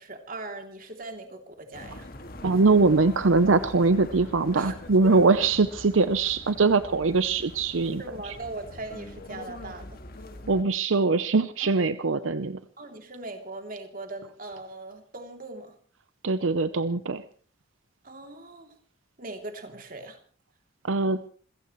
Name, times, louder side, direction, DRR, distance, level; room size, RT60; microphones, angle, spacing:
voice 1, 0.0-2.1 4.5-4.8 5.0-5.1 8.0-10.2 11.6-11.7 12.8-15.8 18.0-18.8 19.2-20.2, right 2 dB, 45° right, 4 dB, 2.9 m, -40 dB
sound 1, 1.7-10.6, left 1 dB, 45° left, 2.0 m, -43 dB
voice 2, 2.4-8.3 10.5-12.6 16.2-17.2 20.8-21.2, right 3 dB, 75° right, 12 dB, 0.7 m, -22 dB
27.5 x 16.0 x 3.1 m, 0.43 s
head